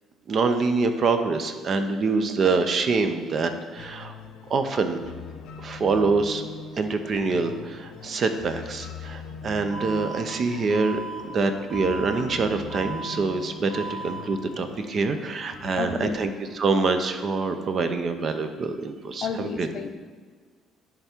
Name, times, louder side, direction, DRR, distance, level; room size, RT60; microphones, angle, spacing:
voice 1, 0.3-4.1 4.5-5.0 5.6-6.4 6.8-19.7, right 4 dB, 40° right, 8 dB, 0.5 m, -25 dB
sound 1, 3.8-16.7, left 5 dB, 85° left, 0.8 m, -42 dB
Alarm, 9.7-10.2 10.7-11.2 11.7-12.2 12.7-13.2 13.7-14.2, right 3 dB, 25° right, 1.2 m, -36 dB
voice 2, 15.7-16.2 19.2-19.9, left 6 dB, 50° left, 7 dB, 0.5 m, -31 dB
10.5 x 3.5 x 4.3 m, 1.5 s
cardioid pair, 140°, 0 cm